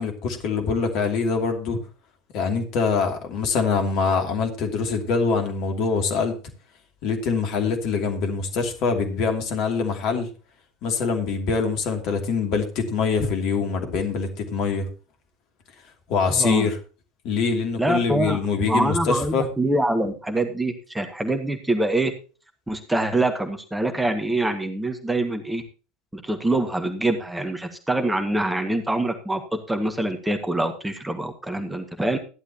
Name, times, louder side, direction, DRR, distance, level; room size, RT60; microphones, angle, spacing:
voice 1, 0.0-1.8 2.3-6.3 7.0-10.3 10.8-14.8 16.1-16.8 17.2-19.5, left 5 dB, 50° left, 4 dB, 2.7 m, -24 dB
voice 2, 16.3-16.7 17.8-22.1 22.7-25.6 26.1-32.2, right 1 dB, 10° right, 6 dB, 1.8 m, -25 dB
14.5 x 11.0 x 2.9 m, 0.35 s
figure-of-eight pair, 75°, 0 cm